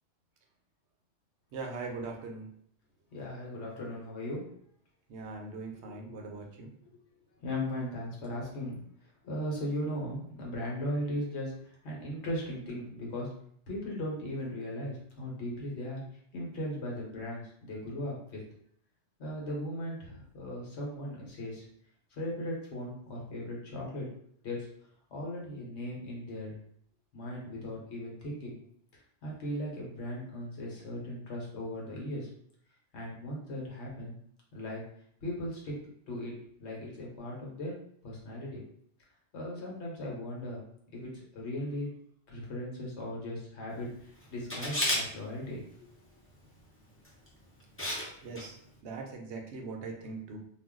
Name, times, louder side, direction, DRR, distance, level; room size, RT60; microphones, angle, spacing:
voice 1, 1.5-2.5 5.1-6.7 48.2-48.6 48.8-50.4, right 3 dB, 70° right, 1 dB, 0.8 m, -40 dB
voice 2, 3.1-4.6 5.8-6.2 7.4-8.8 9.2-13.3 13.7-16.0 16.3-18.4 19.2-21.6 22.1-24.1 24.4-24.7 25.1-26.5 27.1-28.6 29.2-32.3 32.9-34.1 34.5-34.9 35.2-35.8 36.1-36.3 36.6-37.8 38.0-38.6 39.3-40.6 40.9-41.9 42.3-45.9, left 1 dB, 70° left, -3 dB, 1.2 m, -37 dB
Camera, 44.5-45.0 47.0-47.3 47.8-48.1 48.4-48.5, left 1 dB, 15° left, 0.5 m, -30 dB
2.5 x 2.2 x 3.6 m, 0.65 s
omnidirectional pair, 1.2 m